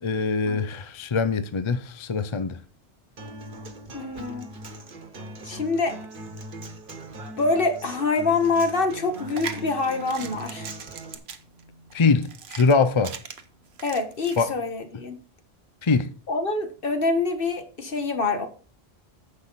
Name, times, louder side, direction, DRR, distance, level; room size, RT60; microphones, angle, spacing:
voice 1, 0.0-2.6 11.9-13.2 14.4-14.5 15.8-16.1, left 4 dB, 35° left, 0.6 m, -23 dB
Human voice / Acoustic guitar, 3.2-11.2, right 1 dB, 55° right, 1.5 m, -40 dB
voice 2, 3.9-4.5 5.4-6.0 7.4-10.7 13.8-15.2 16.3-18.5, left 3 dB, 60° left, 1.6 m, -25 dB
sound 1, 9.1-14.4, right 6 dB, 80° right, 1.2 m, -39 dB
9.9 x 7.5 x 4.1 m
omnidirectional pair, 1.1 m